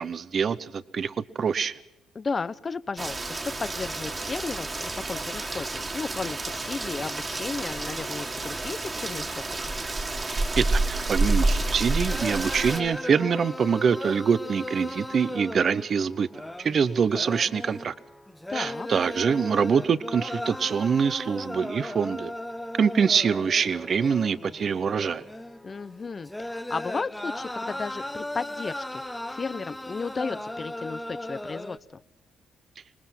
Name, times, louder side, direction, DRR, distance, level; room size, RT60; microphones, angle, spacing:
voice 1, 0.0-1.8 10.6-16.3 16.6-17.9 18.5-22.3 22.8-25.2, right 6 dB, 50° right, 16 dB, 0.8 m, -25 dB
voice 2, 2.1-9.5 18.5-18.9 25.6-32.0, left 4 dB, 35° left, 16 dB, 0.7 m, -34 dB
Rain, 3.0-12.8, right 2 dB, 25° right, 2.1 m, -29 dB
sound 1, 12.1-31.8, left 1 dB, 10° left, 1.0 m, -37 dB
26.0 x 20.0 x 5.9 m, 0.91 s
cardioid pair, 90°, 0 cm